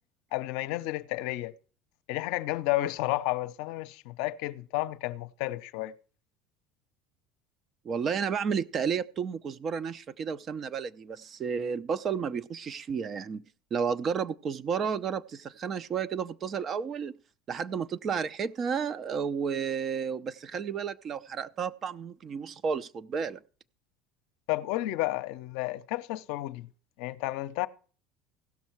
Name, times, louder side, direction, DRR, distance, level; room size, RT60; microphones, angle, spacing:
voice 1, 0.3-1.5 2.1-5.9 24.5-26.7 27.0-27.7, left 17 dB, 70° left, 0.6 m, -31 dB
voice 2, 7.8-13.4 13.7-17.1 17.5-23.4, right 6 dB, 40° right, 0.6 m, -32 dB
16.0 x 6.3 x 4.5 m
supercardioid pair, 95°, 0 cm